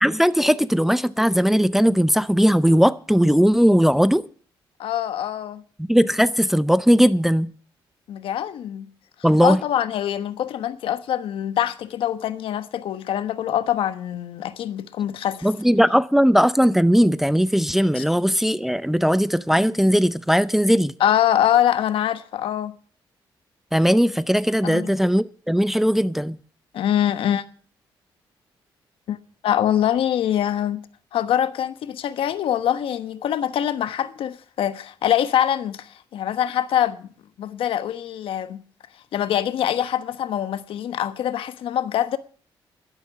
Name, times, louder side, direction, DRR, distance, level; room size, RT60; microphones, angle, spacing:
voice 1, 0.0-4.2 5.8-7.5 9.2-9.6 15.4-20.9 23.7-26.4, equal, 5° right, 0.5 m, -18 dB
voice 2, 4.8-5.6 8.1-8.9 9.4-15.5 17.9-18.0 21.0-22.8 24.6-24.9 26.7-27.4 29.1-29.2 29.4-30.8 31.1-37.1 37.4-38.6 39.1-42.2, left 10 dB, 80° left, 1.2 m, -24 dB
12.0 x 11.0 x 7.1 m
cardioid pair, 95°, 9 cm